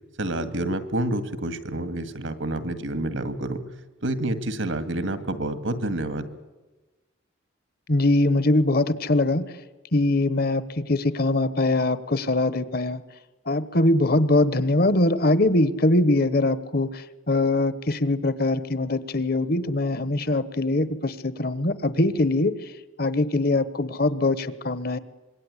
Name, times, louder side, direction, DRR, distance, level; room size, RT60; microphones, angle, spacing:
voice 1, 0.2-3.6 4.0-6.3, right 1 dB, 75° right, 10 dB, 2.0 m, -28 dB
voice 2, 7.9-9.4 9.9-13.0 13.5-22.5 23.0-25.0, left 2 dB, 50° left, 15 dB, 1.1 m, -22 dB
26.0 x 22.0 x 9.9 m, 1.2 s
head